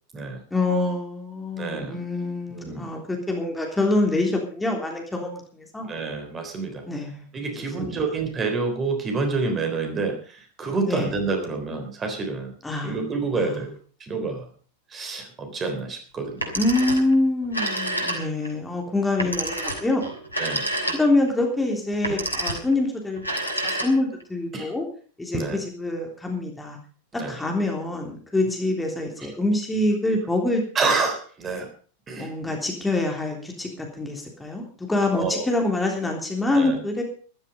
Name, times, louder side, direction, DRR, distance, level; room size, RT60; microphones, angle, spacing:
voice 1, 0.5-5.9 6.9-7.5 7.8-8.0 10.8-11.1 12.6-13.0 13.3-13.6 16.5-20.1 20.9-24.8 25.2-26.8 27.1-30.6 32.2-37.0, left 2 dB, 5° left, 1 dB, 3.3 m, -25 dB
voice 2, 1.6-2.0 2.5-2.9 5.8-6.8 7.3-12.6 12.8-13.7 14.0-14.5 14.9-16.5 20.4-20.7 24.5-24.7 25.3-25.6 27.1-27.4 30.7-31.7 32.1-32.6 35.1-35.5 36.5-36.8, right 4 dB, 20° right, 5 dB, 3.6 m, -28 dB
Telephone, 16.3-17.1 17.4-18.5 19.2-21.3 21.9-22.7 23.2-24.2, right 1 dB, 85° left, 3.2 m, -28 dB
13.5 x 12.5 x 5.3 m, 0.43 s
figure-of-eight pair, 90°, 0 cm